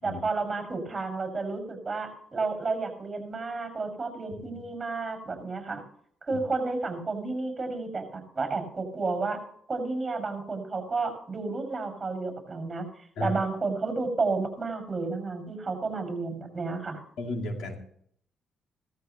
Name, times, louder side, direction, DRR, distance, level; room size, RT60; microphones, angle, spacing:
voice 1, 0.0-5.8 6.3-9.4 9.7-12.9 13.2-17.0, right 3 dB, 25° right, 6 dB, 6.0 m, -31 dB
voice 2, 17.2-17.8, left 2 dB, 75° left, 3 dB, 2.6 m, -33 dB
16.5 x 14.0 x 3.0 m, 0.64 s
cardioid pair, 90°, 0 cm